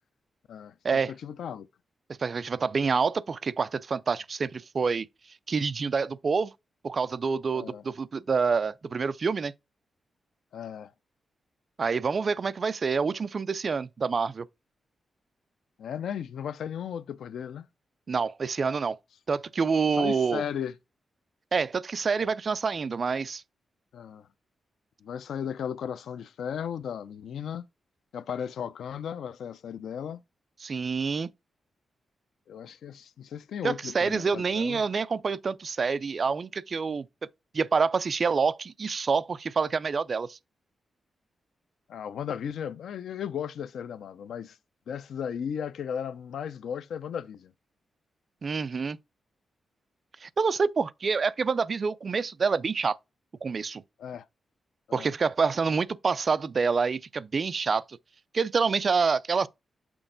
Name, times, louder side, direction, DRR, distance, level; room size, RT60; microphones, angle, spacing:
voice 1, 0.5-1.7 7.5-7.8 10.5-10.9 15.8-17.7 20.0-20.7 23.9-24.3 25.0-27.6 28.1-30.2 32.5-34.8 41.9-44.6 44.9-47.5 54.0-54.2 54.9-55.1, left 8 dB, 90° left, 0.4 m, -35 dB
voice 2, 2.2-5.1 5.5-6.5 6.8-9.5 11.8-14.5 18.1-19.0 19.3-20.4 21.5-23.4 30.6-31.3 33.6-37.1 37.5-40.4 48.4-49.0 50.2-53.0 53.4-53.8 54.9-58.0 58.3-59.5, right 5 dB, 35° right, 0.3 m, -27 dB
6.1 x 4.3 x 3.8 m
wide cardioid pair, 170°, 0 cm